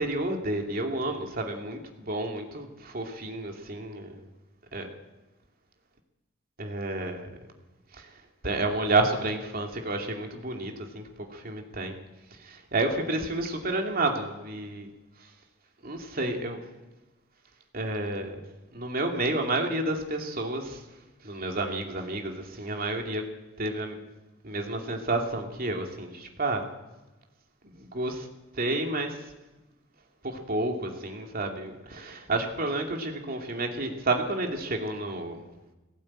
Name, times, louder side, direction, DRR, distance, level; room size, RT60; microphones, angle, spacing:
voice 1, 0.0-4.3 4.7-4.9 6.6-7.3 7.9-12.0 12.3-14.9 15.2-15.3 15.8-16.6 17.7-18.4 18.7-20.8 21.2-23.2 23.6-24.0 24.4-26.6 27.6-28.3 28.5-29.3 30.2-35.4, right 2 dB, 50° right, 2 dB, 2.6 m, -30 dB
19.5 x 17.0 x 8.9 m, 1.1 s
head